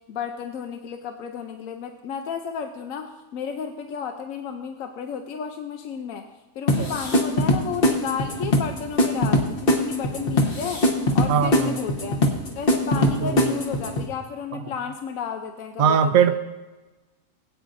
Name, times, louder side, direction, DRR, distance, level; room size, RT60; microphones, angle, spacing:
voice 1, 0.1-6.3 6.5-10.8 11.1-12.2 12.5-16.3, left 7 dB, 80° left, 5 dB, 1.1 m, -32 dB
sound 1, 6.7-14.1, left 1 dB, 45° left, 1.3 m, -22 dB
voice 2, 11.3-11.8 12.9-13.6 14.5-14.6 15.8-16.3, right 7 dB, 80° right, 10 dB, 1.2 m, -21 dB
20.0 x 8.8 x 2.6 m, 1.1 s
omnidirectional pair, 1.4 m